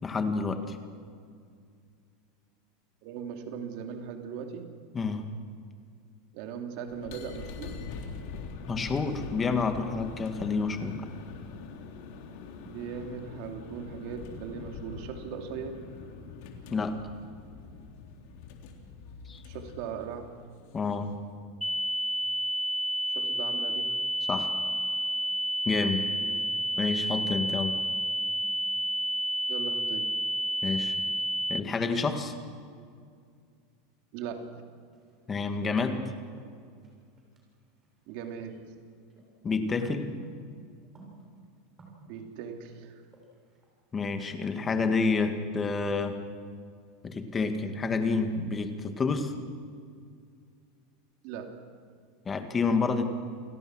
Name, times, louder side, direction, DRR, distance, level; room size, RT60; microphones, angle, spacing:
voice 1, 0.0-0.8 4.9-5.3 8.7-11.0 16.7-17.0 19.3-19.4 20.7-21.1 24.3-24.5 25.7-26.1 26.8-27.8 30.6-31.1 31.5-32.3 35.3-36.1 39.4-40.1 43.9-46.2 47.0-49.3 52.3-53.1, left 4 dB, 20° left, 7 dB, 2.0 m, -29 dB
voice 2, 3.0-4.8 6.3-7.9 12.6-15.8 19.4-20.4 23.1-24.0 26.2-26.4 29.5-30.2 34.1-34.7 38.1-38.7 42.1-43.0 51.2-51.6, right 7 dB, 60° right, 5 dB, 2.8 m, -39 dB
sound 1, 6.9-21.3, left 5 dB, 65° left, 3.3 m, -44 dB
sound 2, 21.6-31.6, equal, ahead, 0.5 m, -30 dB
sound 3, 34.9-36.0 36.4-39.3 39.6-44.0, right 2 dB, 25° right, 7.0 m, -53 dB
29.0 x 18.0 x 6.3 m, 2.2 s
supercardioid pair, 140°, 0 cm